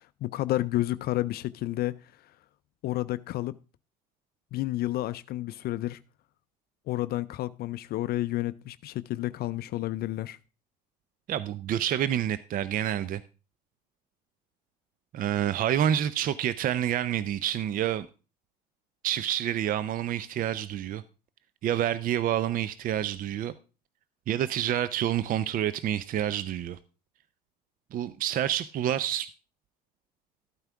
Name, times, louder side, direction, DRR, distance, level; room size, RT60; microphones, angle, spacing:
voice 1, 0.0-2.3 2.8-3.6 4.5-6.0 6.9-10.4, left 16 dB, 50° left, 0.4 m, -31 dB
voice 2, 11.3-13.2 15.1-18.1 19.0-21.0 21.6-23.5 24.3-26.8 27.9-29.3, right 11 dB, 45° right, 0.6 m, -28 dB
13.0 x 8.9 x 3.5 m
hypercardioid pair, 70°, 20 cm